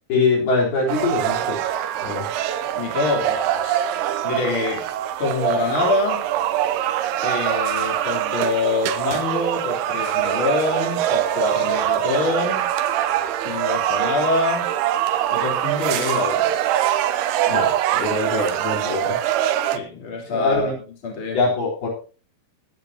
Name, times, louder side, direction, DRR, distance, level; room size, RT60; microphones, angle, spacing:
voice 1, 0.1-1.6 2.0-2.3 17.5-19.2 20.3-20.7 21.3-21.9, left 3 dB, 70° left, -3 dB, 5.8 m, -23 dB
sound 1, 0.9-19.8, right 11 dB, 85° right, 2.8 m, -23 dB
voice 2, 2.7-3.8 4.2-4.9 5.2-6.2 7.2-12.7 13.4-14.7 15.3-16.5 19.6-20.7 21.0-21.4, left 3 dB, 30° left, -1 dB, 3.8 m, -25 dB
18.5 x 10.5 x 2.9 m, 0.36 s
omnidirectional pair, 4.7 m